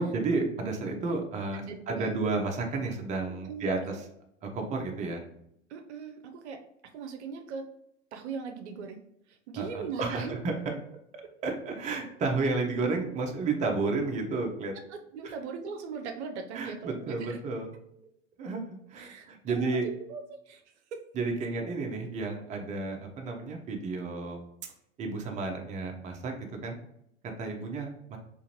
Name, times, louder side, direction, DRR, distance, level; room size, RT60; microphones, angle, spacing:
voice 1, 0.0-4.0 4.4-5.2 9.6-10.6 11.4-14.7 16.5-17.7 18.4-19.9 21.1-24.4 25.0-26.3 26.6-26.8 27.4-28.2, right 3 dB, 20° right, 2 dB, 0.5 m, -32 dB
voice 2, 1.5-2.1 3.4-4.0 5.7-6.6 6.9-7.7 8.1-9.0 9.3-10.4 14.9-17.4 19.0-20.6 20.9-21.0 21.7-21.8, right 5 dB, 65° right, 6 dB, 0.6 m, -40 dB
3.7 x 2.6 x 2.8 m, 0.76 s
figure-of-eight pair, 90°, 37 cm